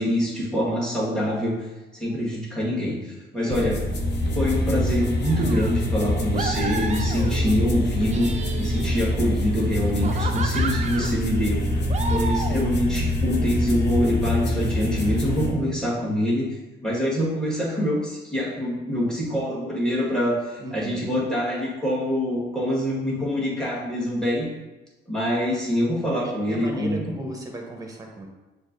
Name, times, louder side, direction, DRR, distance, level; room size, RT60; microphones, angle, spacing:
voice 1, 0.0-1.6 1.9-3.8 4.3-8.3 8.6-11.7 12.1-24.5 25.1-27.1, equal, 5° left, -5 dB, 1.4 m, -25 dB
voice 2, 3.3-3.9 20.6-21.1 26.1-28.3, right 1 dB, 15° right, 1 dB, 0.9 m, -35 dB
sound 1, 3.5-15.5, left 1 dB, 60° left, 0.8 m, -25 dB
sound 2, 5.2-5.8 6.3-7.6 8.0-9.2 9.8-11.2 11.9-12.7, right 4 dB, 35° right, 0.4 m, -33 dB
6.3 x 2.6 x 2.5 m, 1.1 s
cardioid pair, 90°, 20 cm